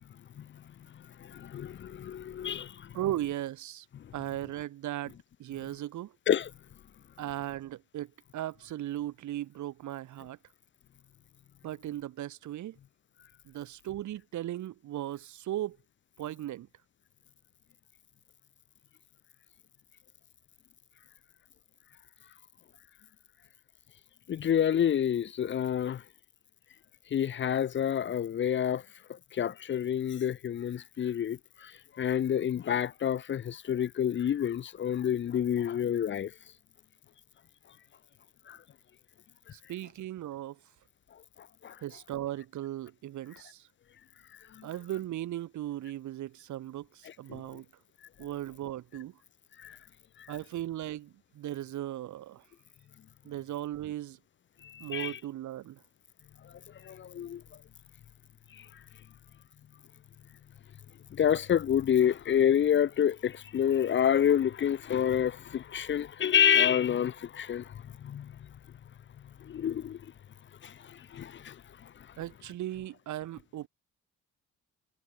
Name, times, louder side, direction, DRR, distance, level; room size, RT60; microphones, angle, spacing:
voice 1, 0.9-3.0 3.9-4.1 6.3-6.5 24.3-26.0 27.1-28.8 29.1-36.3 38.5-38.6 41.1-41.8 44.5-44.7 47.0-47.4 49.6-49.8 50.2-50.3 54.6-55.2 56.4-57.4 58.5-58.8 61.1-68.5 69.4-70.0 70.6-72.1, left 9 dB, 40° left, 0.5 m, -29 dB
voice 2, 2.9-3.8 4.1-6.1 7.2-10.4 11.6-12.8 13.4-15.8 16.2-16.7 39.5-40.6 41.8-43.7 44.6-47.6 48.2-49.2 50.3-52.4 53.2-54.2 54.8-55.8 72.2-73.7, right 13 dB, 75° right, 1.6 m, -37 dB
cardioid pair, 90°, 30 cm